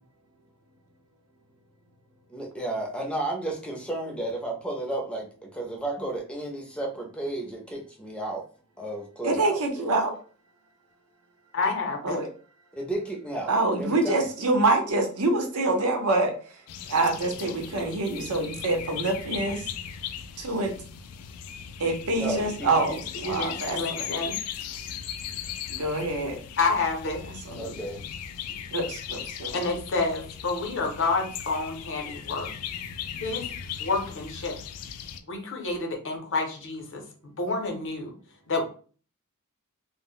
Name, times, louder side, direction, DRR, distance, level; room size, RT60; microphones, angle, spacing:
voice 1, 2.3-8.4 8.8-9.9 12.7-13.5 13.8-14.2 22.2-22.9 27.6-28.0, right 2 dB, 5° left, 1 dB, 0.5 m, -33 dB
voice 2, 9.2-10.1 12.0-12.3 13.5-16.3 16.9-19.7 20.4-20.7 21.8-24.2 25.7-26.4 27.5-27.7 28.5-29.5, right 2 dB, 75° right, 3 dB, 0.7 m, -26 dB
voice 3, 11.5-12.2 22.7-24.4 26.6-27.3 29.5-32.5 33.2-33.5 33.8-34.6 35.3-38.1 38.5-38.6, left 3 dB, 60° left, 2 dB, 0.7 m, -29 dB
sound 1, 16.7-35.2, left 8 dB, 85° left, 0.3 m, -38 dB
2.1 x 2.0 x 3.6 m, 0.40 s
head